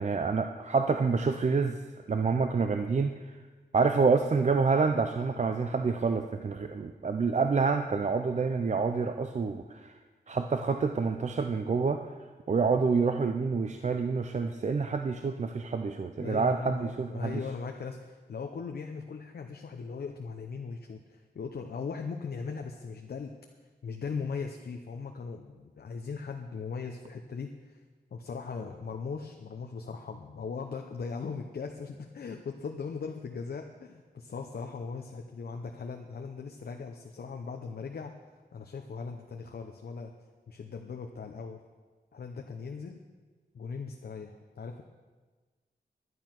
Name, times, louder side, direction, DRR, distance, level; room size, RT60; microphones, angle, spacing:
voice 1, 0.0-1.8 2.1-3.2 3.7-9.9 10.3-12.0 12.5-17.4, right 4 dB, 45° right, 7 dB, 0.6 m, -27 dB
voice 2, 16.2-23.3 23.8-27.8 28.1-38.1 38.5-40.1 40.5-41.6 42.1-43.0 43.5-44.8, left 5 dB, 65° left, 4 dB, 0.8 m, -39 dB
11.0 x 11.0 x 5.9 m, 1.4 s
wide cardioid pair, 125°, 17 cm